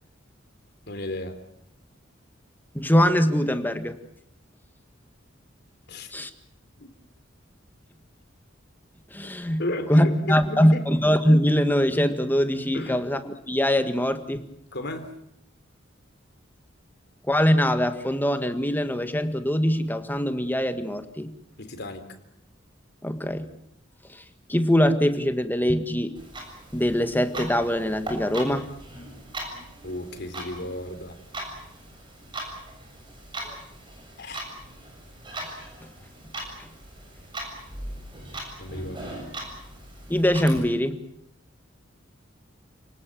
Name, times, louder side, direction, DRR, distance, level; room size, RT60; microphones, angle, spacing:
voice 1, 0.9-1.4 5.9-6.1 6.8-6.9 9.6-10.9 12.7-13.0 14.7-15.1 21.6-22.2 29.8-31.2 34.2-34.4 38.6-39.1, left 1 dB, 60° left, 7 dB, 3.6 m, -34 dB
voice 2, 2.7-4.0 6.1-6.3 9.1-9.6 9.9-14.4 17.2-21.3 23.0-23.5 24.1-24.2 24.5-26.2 26.7-28.6 35.8-35.9 36.6-36.7 40.1-41.0, equal, 10° left, 8 dB, 1.6 m, -22 dB
Clock, 26.2-40.6, right 1 dB, 25° right, 7.1 m, -39 dB
30.0 x 19.0 x 7.7 m, 0.76 s
head